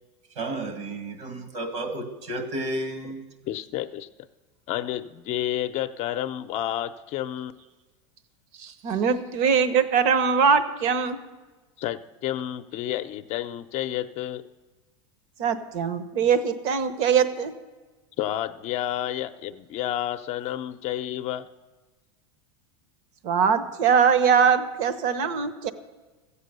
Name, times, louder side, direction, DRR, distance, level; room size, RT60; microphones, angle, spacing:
voice 1, 0.4-3.2, right 1 dB, 75° right, 7 dB, 2.1 m, -32 dB
voice 2, 3.5-4.1 4.7-7.5 11.8-14.4 18.2-21.5, left 12 dB, 45° left, 9 dB, 0.6 m, -30 dB
voice 3, 8.6-11.2 15.4-17.5 23.2-25.7, right 6 dB, 55° right, 12 dB, 1.0 m, -22 dB
14.0 x 8.4 x 6.8 m, 1.3 s
supercardioid pair, 120°, 15 cm